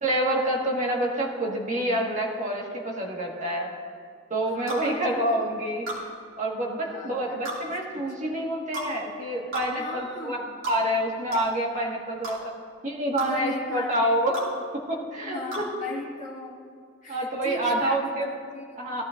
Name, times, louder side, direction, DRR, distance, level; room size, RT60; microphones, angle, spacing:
voice 1, 0.0-3.7 4.3-5.9 6.4-12.5 12.8-14.4 14.7-15.7 17.1-18.3 18.8-19.0, right 1 dB, 35° right, -2 dB, 1.7 m, -27 dB
voice 2, 4.5-5.5 6.8-7.4 8.2-8.3 9.8-10.3 13.3-14.1 15.2-16.6 17.0-18.6, left 3 dB, 35° left, -4 dB, 2.2 m, -38 dB
sound 1, 4.7-4.9 5.9-6.0 7.4-7.6 8.7-8.9 9.5-9.7 10.6-10.8 11.3-11.5 12.2-12.4 13.2-13.3 14.3-14.5 15.5-15.7, right 2 dB, 85° right, 2.8 m, -33 dB
17.5 x 12.5 x 2.6 m, 2.1 s
head